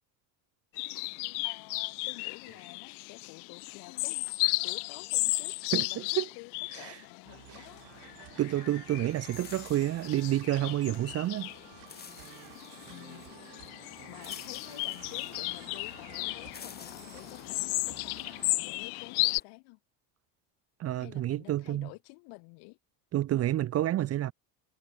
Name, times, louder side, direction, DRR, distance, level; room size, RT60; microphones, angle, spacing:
sound 1, 0.8-19.4, left 34 dB, 85° left, 1.4 m, -35 dB
voice 1, 1.4-4.3 4.6-6.1 6.3-7.8 12.9-13.3 14.1-19.8 21.0-22.8, left 32 dB, 70° left, 3.0 m, -50 dB
voice 2, 5.7-6.3 6.7-7.0 7.5-7.7 8.4-11.5 20.8-21.9 23.1-24.3, right 13 dB, 35° right, 1.1 m, -29 dB
sound 2, 7.2-18.5, right 28 dB, 70° right, 6.0 m, -53 dB
sound 3, 9.1-19.4, left 6 dB, 20° left, 7.9 m, -53 dB
cardioid pair, 155°, 42 cm